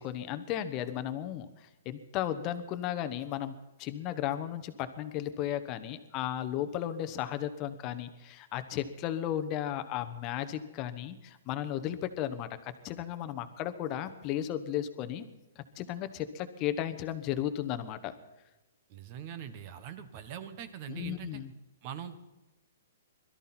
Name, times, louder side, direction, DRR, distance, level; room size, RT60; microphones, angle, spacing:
voice 1, 0.0-3.5 3.8-15.2 15.6-18.1 20.9-21.5, left 11 dB, 25° left, 9 dB, 1.1 m, -35 dB
voice 2, 18.9-21.4 21.8-22.2, right 8 dB, 30° right, 12 dB, 1.3 m, -42 dB
21.5 x 13.0 x 4.3 m, 1.0 s
hypercardioid pair, 170°, 0 cm